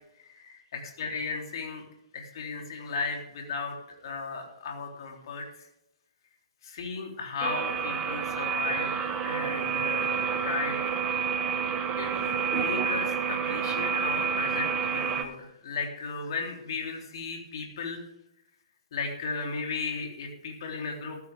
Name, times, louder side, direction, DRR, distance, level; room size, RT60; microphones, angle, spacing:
voice 1, 0.2-1.8 2.1-3.8 4.0-5.4 6.6-11.0 12.0-18.0 18.9-21.2, left 4 dB, 50° left, 1 dB, 3.7 m, -35 dB
sound 1, 7.4-15.2, right 7 dB, 25° right, 1.4 m, -29 dB
14.5 x 13.5 x 3.7 m, 0.83 s
figure-of-eight pair, 125°, 3 cm